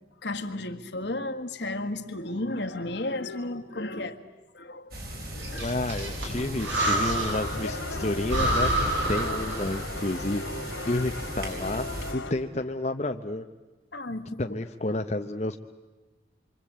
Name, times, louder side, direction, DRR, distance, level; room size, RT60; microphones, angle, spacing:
voice 1, 0.2-4.2 4.6-4.9 5.3-5.6 9.0-9.3 13.9-14.4, left 2 dB, 65° left, 6 dB, 1.8 m, -33 dB
sound 1, 4.9-12.1, equal, 50° right, 5.3 m, -37 dB
Breathing, 5.4-7.6 7.9-8.0 8.3-10.0, right 1 dB, 80° right, 7.6 m, -28 dB
voice 2, 5.5-8.7 9.1-10.5 10.9-13.4 14.4-15.6, left 2 dB, 35° left, 4 dB, 0.8 m, -30 dB
sound 2, 7.3-12.3, left 2 dB, 85° left, 2.9 m, -37 dB
28.0 x 24.5 x 8.7 m, 1.2 s
head